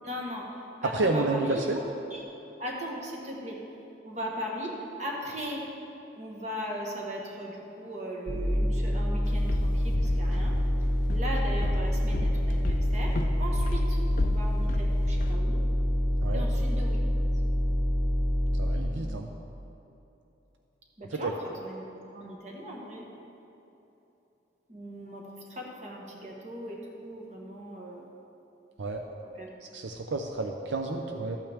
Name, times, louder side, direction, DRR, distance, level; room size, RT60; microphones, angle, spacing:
voice 1, 0.0-1.6 2.1-2.2 2.6-3.6 4.0-5.7 6.1-15.6 16.3-17.0 21.0-23.0 24.7-28.1 29.3-29.5, equal, 40° right, -2 dB, 1.4 m, -38 dB
voice 2, 0.9-1.8 16.2-16.5 18.5-19.3 21.1-21.3 28.8-29.0 29.7-31.4, right 2 dB, 80° right, 3 dB, 0.6 m, -30 dB
sound 1, 8.3-18.8, equal, 5° right, 2.0 m, -26 dB
Walk footsteps, 9.3-15.4, left 3 dB, 45° left, 0.3 m, -37 dB
13.5 x 8.7 x 3.5 m, 3.0 s
head